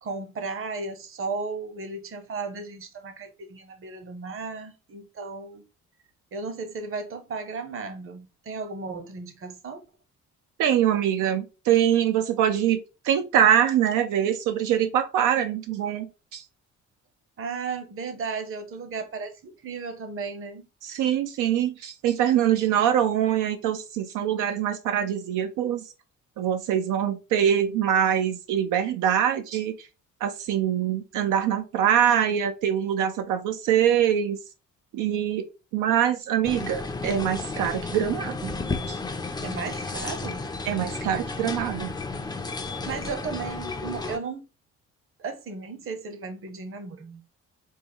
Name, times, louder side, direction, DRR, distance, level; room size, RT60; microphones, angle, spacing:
voice 1, 0.0-5.6 6.3-9.8 17.4-20.6 39.4-40.4 42.9-44.4 45.2-47.2, right 4 dB, 45° right, 0.8 m, -35 dB
voice 2, 10.6-16.4 20.8-25.8 26.4-29.9 30.2-34.4 34.9-35.4 35.7-38.5 38.9-39.0 40.7-41.9, right 9 dB, 85° right, 0.5 m, -24 dB
sound 1, 36.4-44.2, left 3 dB, 15° left, 0.4 m, -33 dB
3.5 x 2.0 x 3.4 m
cardioid pair, 90°, 30 cm